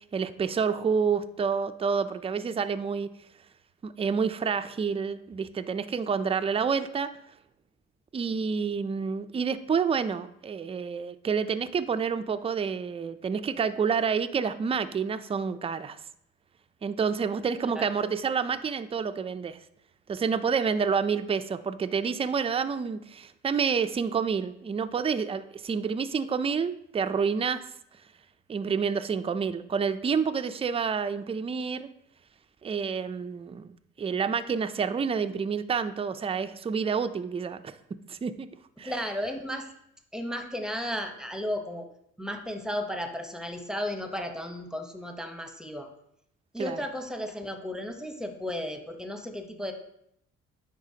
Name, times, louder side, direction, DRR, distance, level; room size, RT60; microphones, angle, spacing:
voice 1, 0.1-3.1 3.8-7.1 8.1-16.0 16.8-19.6 20.1-27.6 28.5-31.9 32.6-33.7 34.0-37.7 38.1-38.5 38.8-38.9 46.6-46.8, right 6 dB, 20° right, 11 dB, 0.4 m, -28 dB
voice 2, 38.8-39.7 40.1-41.9 42.2-45.9 46.5-49.7, left 1 dB, ahead, 5 dB, 0.9 m, -34 dB
9.9 x 3.9 x 2.8 m, 0.75 s
cardioid pair, 90°, 30 cm